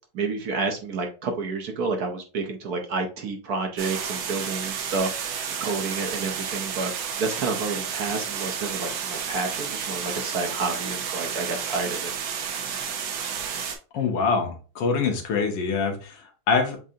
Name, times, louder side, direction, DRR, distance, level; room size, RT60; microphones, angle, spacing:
voice 1, 0.1-6.9 7.2-12.1, right 4 dB, 60° right, 4 dB, 1.2 m, -30 dB
sound 1, 3.8-13.8, right 7 dB, 85° right, 1.6 m, -31 dB
voice 2, 13.9-16.8, left 5 dB, 75° left, 3 dB, 1.7 m, -25 dB
7.4 x 2.6 x 2.7 m, 0.36 s
omnidirectional pair, 2.0 m